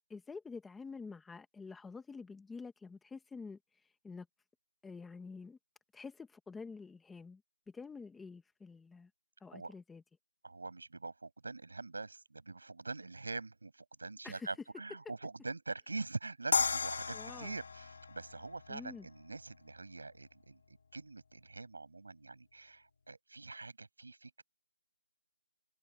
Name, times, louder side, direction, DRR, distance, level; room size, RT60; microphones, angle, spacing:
voice 1, 0.1-4.3 4.8-5.6 5.9-7.4 7.7-9.1 9.4-10.0 14.2-14.5 17.1-17.5 18.7-19.1, left 4 dB, ahead, 1.0 m, -48 dB
voice 2, 10.4-24.4, right 3 dB, 60° right, 7.1 m, -44 dB
sound 1, 16.5-19.6, left 5 dB, 40° left, 1.6 m, -35 dB
figure-of-eight pair, 180°, 0 cm